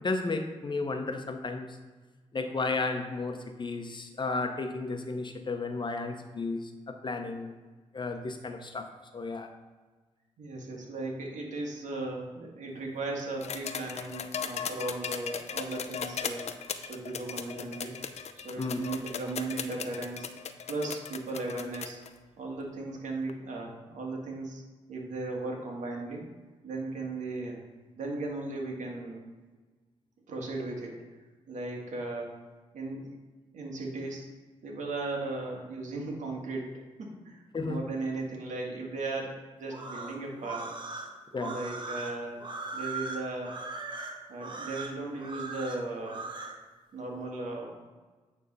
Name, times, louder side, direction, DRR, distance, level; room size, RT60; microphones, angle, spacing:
voice 1, 0.0-1.7 2.3-6.7 7.0-7.5 7.9-8.9 9.1-9.5 18.6-18.9 37.5-37.8 41.3-41.6, left 3 dB, 40° left, 6 dB, 1.0 m, -33 dB
voice 2, 10.4-16.5 16.8-17.9 18.3-20.3 20.7-22.0 22.4-24.6 24.9-26.3 26.6-27.6 28.0-29.3 30.3-31.0 31.5-32.4 32.7-33.1 33.5-34.3 34.6-36.7 37.0-40.7 41.0-41.1 41.4-42.4 42.7-43.6 44.3-46.3 46.9-47.9, right 2 dB, 75° right, -1 dB, 1.9 m, -36 dB
sound 1, 13.4-22.1 23.3-23.4, left 7 dB, 60° left, 0.6 m, -37 dB
sound 2, 39.7-46.6, right 3 dB, 40° right, 1.3 m, -39 dB
9.2 x 3.6 x 5.4 m, 1.3 s
cardioid pair, 70°, 13 cm